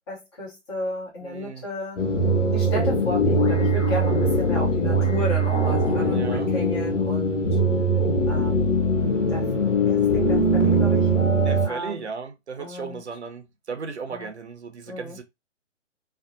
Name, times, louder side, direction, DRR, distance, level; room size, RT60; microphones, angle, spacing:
voice 1, 0.1-2.0 2.5-7.6 8.3-8.7 9.3-9.5 9.8-11.1 11.6-12.1 12.6-13.0 14.1-14.3 14.9-15.2, equal, 20° left, 0.9 m, -33 dB
voice 2, 1.2-1.7 6.0-6.5 11.5-15.2, right 5 dB, 65° right, 0.6 m, -36 dB
sound 1, 2.0-11.7, right 1 dB, 75° left, 0.7 m, -21 dB
Drum, 5.5-8.1, equal, 5° right, 0.4 m, -35 dB
2.6 x 2.0 x 2.5 m
figure-of-eight pair, 135°, 37 cm